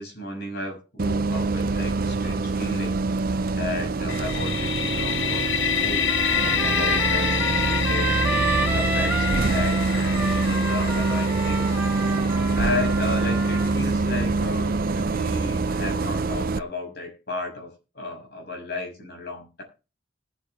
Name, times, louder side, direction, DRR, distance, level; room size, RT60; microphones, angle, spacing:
voice 1, 0.0-3.0 3.5-11.8 12.5-19.6, left 2 dB, 60° left, 1 dB, 6.8 m, -34 dB
Bus, 1.0-16.6, right 3 dB, 50° right, 0.5 m, -25 dB
sound 1, 4.1-13.8, left 9 dB, 85° left, 0.8 m, -28 dB
Trumpet, 6.1-13.7, right 2 dB, 10° right, 1.0 m, -31 dB
20.0 x 8.1 x 3.5 m, 0.31 s
head